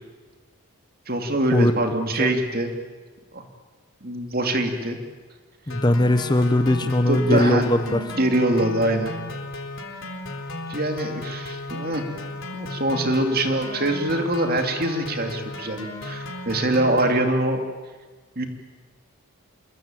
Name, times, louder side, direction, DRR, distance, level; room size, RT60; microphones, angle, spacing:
voice 1, 1.1-2.7 3.3-3.5 4.0-5.0 7.1-9.1 10.7-12.1 12.5-17.6 18.4-18.5, right 1 dB, 40° right, 5 dB, 2.8 m, -24 dB
sound 1, 5.7-17.2, left 2 dB, 60° left, 3.6 m, -35 dB
voice 2, 5.7-8.0 8.5-8.6, left 1 dB, 20° left, 10 dB, 0.9 m, -20 dB
26.5 x 22.0 x 9.1 m, 1.4 s
head